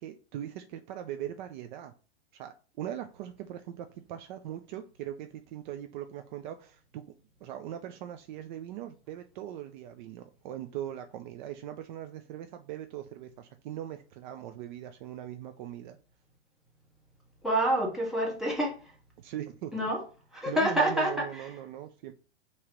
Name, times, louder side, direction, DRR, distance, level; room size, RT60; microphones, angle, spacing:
voice 1, 0.0-1.9 2.3-7.0 7.4-16.0 19.2-19.9 20.5-22.1, right 11 dB, 45° right, 0.7 m, -40 dB
voice 2, 17.4-18.8 19.7-20.0 20.3-21.4, right 1 dB, ahead, 1.6 m, -27 dB
5.7 x 3.2 x 5.2 m
hypercardioid pair, 120°, 34 cm